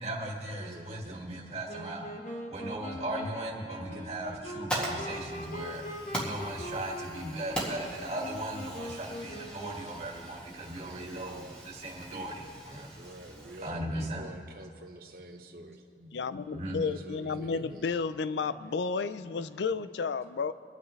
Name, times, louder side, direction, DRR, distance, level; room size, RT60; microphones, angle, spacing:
voice 1, 0.0-2.1 2.5-5.8 6.2-12.9 13.6-14.2 15.2-16.1 16.5-16.8, right 1 dB, 35° right, 2.0 m, -38 dB
voice 2, 0.6-1.2 10.8-11.6 12.1-12.5 13.0-15.8 16.8-18.0, right 2 dB, 55° right, 0.8 m, -47 dB
Wind instrument woodwind instrument, 1.7-10.1, equal, 40° left, 1.2 m, -42 dB
Fire, 4.2-13.7, right 1 dB, 5° left, 2.0 m, -41 dB
voice 3, 16.1-20.5, left 5 dB, 85° left, 0.4 m, -32 dB
24.0 x 9.5 x 3.3 m
head